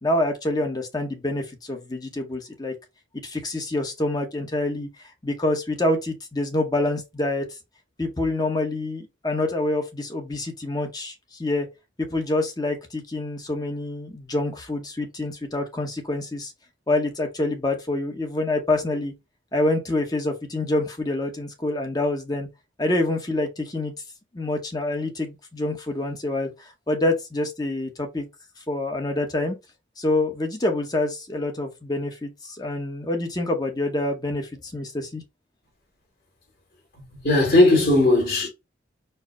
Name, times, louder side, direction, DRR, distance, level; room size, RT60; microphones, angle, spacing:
voice 1, 0.0-2.7 3.2-4.9 5.2-7.5 8.0-11.1 11.4-11.7 12.0-16.5 16.9-19.1 19.5-22.5 22.8-23.9 24.3-28.3 28.7-29.6 30.0-35.2, left 2 dB, 20° left, 0.9 m, -26 dB
voice 2, 37.0-38.5, left 2 dB, 55° left, 2.0 m, -18 dB
4.5 x 2.1 x 4.7 m
head